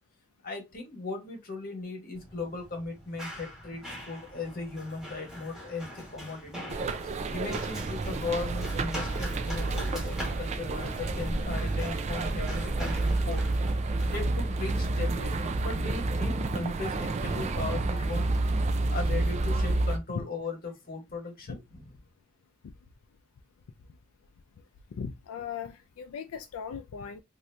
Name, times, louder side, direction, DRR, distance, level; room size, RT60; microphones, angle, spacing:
voice 1, 0.4-6.8 7.0-13.4 14.1-18.3 18.9-21.8, left 3 dB, 45° left, 1.1 m, -37 dB
Run, 2.1-19.4, equal, ahead, 1.2 m, -44 dB
sound 1, 6.7-20.0, right 2 dB, 30° right, 0.3 m, -29 dB
voice 2, 24.9-27.2, left 6 dB, 85° left, 0.4 m, -38 dB
2.8 x 2.6 x 3.2 m
head